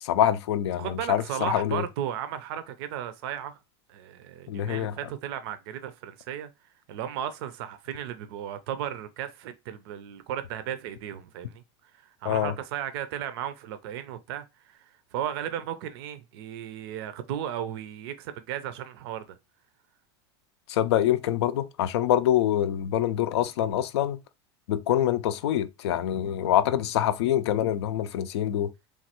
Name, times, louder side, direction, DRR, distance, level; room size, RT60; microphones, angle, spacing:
voice 1, 0.0-1.8 4.5-4.9 12.3-12.5 20.7-24.2 24.7-28.7, left 11 dB, 85° left, 0.4 m, -25 dB
voice 2, 0.8-3.6 3.9-6.5 6.9-19.4, right 10 dB, 70° right, 0.4 m, -35 dB
3.1 x 2.3 x 2.8 m
supercardioid pair, 135°, 14 cm